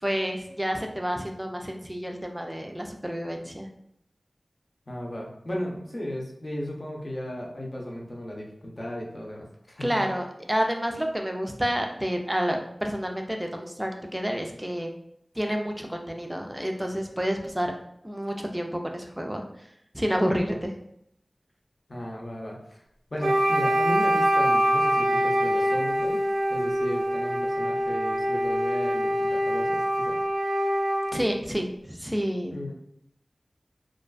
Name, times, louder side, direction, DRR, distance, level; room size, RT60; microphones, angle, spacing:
voice 1, 0.0-3.7 9.8-14.9 15.4-17.7 18.0-19.4 19.9-20.7 31.1-32.5, equal, 10° right, 3 dB, 0.4 m, -29 dB
voice 2, 4.9-10.1 21.9-22.8 23.1-26.2 26.5-30.2 32.5-32.7, left 1 dB, 50° left, -2 dB, 0.6 m, -35 dB
Wind instrument woodwind instrument, 23.2-31.2, equal, 80° right, 0.6 m, -24 dB
2.4 x 2.3 x 2.3 m, 0.76 s
wide cardioid pair, 70°, 0 cm